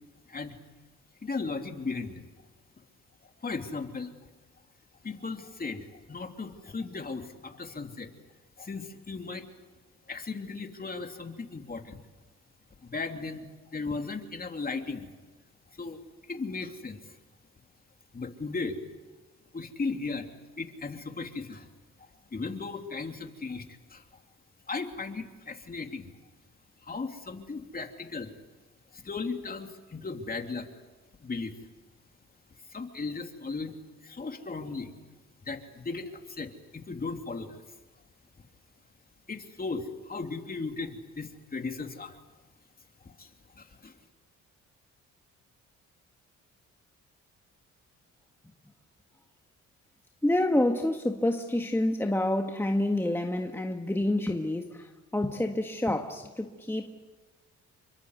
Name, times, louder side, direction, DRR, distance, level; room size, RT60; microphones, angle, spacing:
voice 1, 1.2-2.3 3.4-4.2 5.0-8.1 8.6-9.5 10.1-12.0 12.8-15.1 15.8-16.0 16.3-17.0 18.1-18.8 19.5-20.3 20.6-21.7 22.0-23.6 23.9-24.0 24.7-26.1 26.8-28.3 28.9-30.7 31.2-31.5 32.7-33.7 34.0-34.9 35.4-37.6 39.3-42.2 43.0-44.0, left 4 dB, 30° left, 3.0 m, -36 dB
voice 2, 50.2-56.9, left 1 dB, 10° left, 1.7 m, -28 dB
29.0 x 23.5 x 8.1 m
cardioid pair, 90°, 30 cm